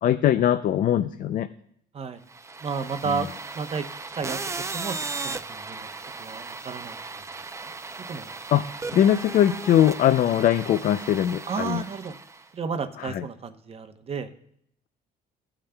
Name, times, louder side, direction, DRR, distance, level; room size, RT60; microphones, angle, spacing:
voice 1, 0.0-1.5 3.1-3.3 8.5-11.8 13.0-13.3, left 11 dB, 55° left, 10 dB, 0.4 m, -21 dB
sound 1, 2.3-12.5, right 3 dB, 15° right, 0.5 m, -36 dB
voice 2, 2.6-3.3 3.5-3.9 4.2-5.9 6.2-7.0 7.6-7.7 8.1-8.3 11.5-12.1 12.5-14.3, right 5 dB, 35° right, 9 dB, 0.9 m, -32 dB
16.0 x 8.8 x 2.3 m, 0.68 s
cardioid pair, 110°, 17 cm